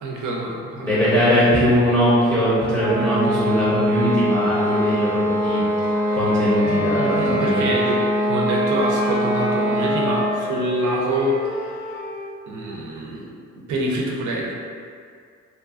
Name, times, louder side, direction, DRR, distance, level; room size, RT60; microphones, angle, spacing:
voice 1, 0.0-1.5 6.1-6.2 6.6-12.0 12.5-13.3 13.5-14.5, right 1 dB, 75° right, -2 dB, 0.6 m, -26 dB
voice 2, 0.8-7.7, equal, 10° left, -11 dB, 0.7 m, -21 dB
sound 1, 2.8-10.5, equal, 10° right, 0.4 m, -22 dB
Wind instrument woodwind instrument, 4.6-8.2 8.5-12.4, left 1 dB, 70° left, 1.3 m, -34 dB
2.6 x 2.4 x 2.4 m, 2.2 s
cardioid pair, 90°, 30 cm